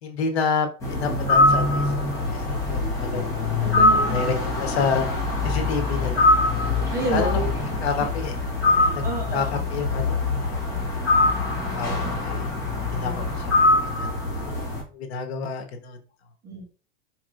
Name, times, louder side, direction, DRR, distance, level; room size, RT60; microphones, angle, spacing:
voice 1, 0.0-3.3 4.1-5.1 5.4-6.3 7.1-7.4 7.8-8.3 8.7-9.0 9.3-10.2 10.5-10.6 11.6-12.5 12.9-14.1 14.3-14.6 14.9-16.0, left 5 dB, 85° left, 5 dB, 1.1 m, -29 dB
sound 1, 0.8-14.8, left 2 dB, 10° left, 1.3 m, -23 dB
voice 2, 3.6-4.2 6.9-8.1 8.7-9.6 12.9-13.3 16.4-16.7, right 4 dB, 10° right, -1 dB, 0.3 m, -31 dB
4.7 x 3.0 x 2.5 m, 0.37 s
supercardioid pair, 170°, 31 cm